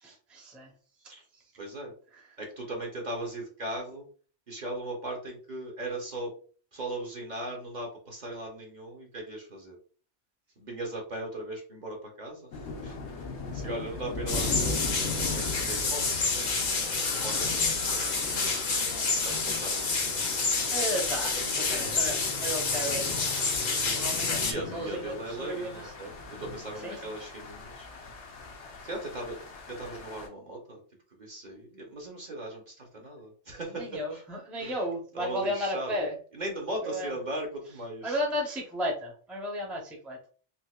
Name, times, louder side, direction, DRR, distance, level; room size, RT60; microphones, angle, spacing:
voice 1, 0.0-0.7 2.1-2.3 20.7-23.2 23.9-24.5 24.7-26.2 26.8-27.2 33.7-36.2 36.8-37.2 38.0-40.2, equal, ahead, -1 dB, 0.6 m, -34 dB
voice 2, 1.6-1.9 2.4-4.0 4.5-6.3 6.7-9.7 10.6-12.5 12.8-13.0 13.5-18.6 19.2-20.0 20.5-20.9 21.6-21.9 24.2-26.1 26.4-27.9 28.8-29.4 29.7-30.8 31.2-34.2 34.6-34.8 35.1-36.1 36.3-38.2, right 1 dB, 45° right, 0 dB, 0.9 m, -38 dB
sound 1, 12.5-30.3, left 3 dB, 75° left, 1.0 m, -40 dB
sound 2, 14.3-24.5, left 4 dB, 45° left, 0.7 m, -28 dB
4.1 x 2.4 x 2.3 m, 0.41 s
omnidirectional pair, 1.2 m